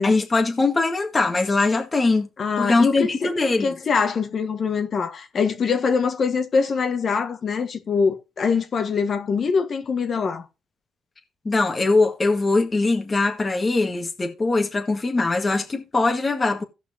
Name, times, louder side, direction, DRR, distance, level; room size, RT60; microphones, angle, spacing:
voice 1, 0.0-2.3 2.6-3.8 11.5-16.6, left 3 dB, 30° left, 1.7 m, -21 dB
voice 2, 2.4-3.3 3.6-10.4, left 5 dB, 50° left, 1.5 m, -23 dB
16.5 x 5.6 x 2.8 m
cardioid pair, 90°, 0 cm